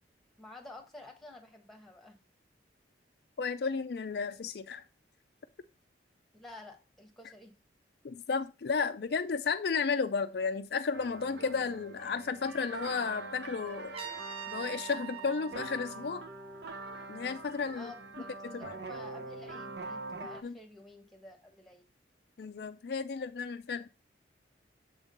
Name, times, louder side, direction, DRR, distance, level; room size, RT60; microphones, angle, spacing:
voice 1, 0.4-2.2 6.3-7.5 17.8-21.9, left 2 dB, ahead, 1.2 m, -51 dB
voice 2, 3.4-4.8 8.0-14.0 14.5-16.2 17.1-17.9 18.4-18.7 20.4-20.5 22.4-23.9, left 5 dB, 55° left, 0.4 m, -33 dB
sound 1, 10.9-20.4, right 3 dB, 60° right, 0.7 m, -44 dB
Trumpet, 13.9-16.9, right 9 dB, 30° right, 0.9 m, -44 dB
7.3 x 3.6 x 5.3 m
head